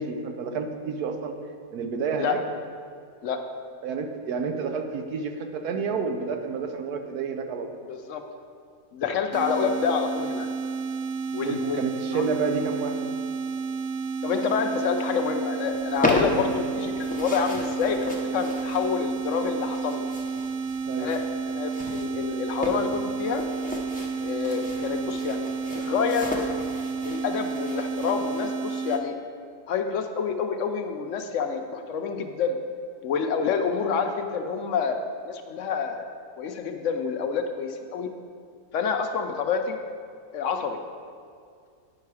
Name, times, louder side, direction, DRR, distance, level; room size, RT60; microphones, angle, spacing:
voice 1, 0.0-1.4 1.7-2.4 3.8-7.8 11.3-13.1 20.9-21.1, right 5 dB, 85° right, 6 dB, 1.3 m, -30 dB
voice 2, 7.9-8.2 8.9-10.5 11.3-11.8 12.1-12.2 14.2-20.0 21.0-21.2 21.5-23.4 24.2-25.5 25.8-26.3 27.0-29.1 29.7-32.6 33.0-35.0 35.3-36.1 36.4-38.1 38.7-39.8 40.3-40.8, left 6 dB, 65° left, 6 dB, 0.9 m, -28 dB
sound 1, 9.3-29.0, right 5 dB, 65° right, 0.8 m, -31 dB
sound 2, 15.7-28.4, left 1 dB, 10° left, 0.5 m, -34 dB
9.4 x 5.6 x 4.7 m, 2.2 s
omnidirectional pair, 1.6 m